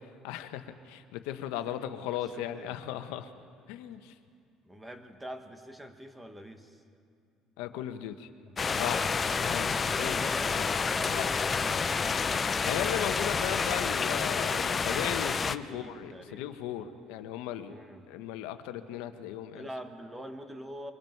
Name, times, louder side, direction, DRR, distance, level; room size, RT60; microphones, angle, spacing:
voice 1, 0.2-3.3 3.7-4.1 7.6-8.3 8.6-9.0 9.4-10.2 10.5-10.7 11.1-11.3 12.6-17.8 18.1-19.7, left 11 dB, 90° left, 9 dB, 1.0 m, -37 dB
voice 2, 1.8-2.8 3.9-4.0 4.6-6.8 8.4-9.0 9.9-11.8 15.7-16.4 17.7-18.1 19.5-20.9, equal, 10° right, 7 dB, 1.4 m, -45 dB
sound 1, 8.6-15.6, left 5 dB, 25° left, 0.5 m, -29 dB
25.5 x 23.5 x 4.6 m, 2.4 s
cardioid pair, 130°, 0 cm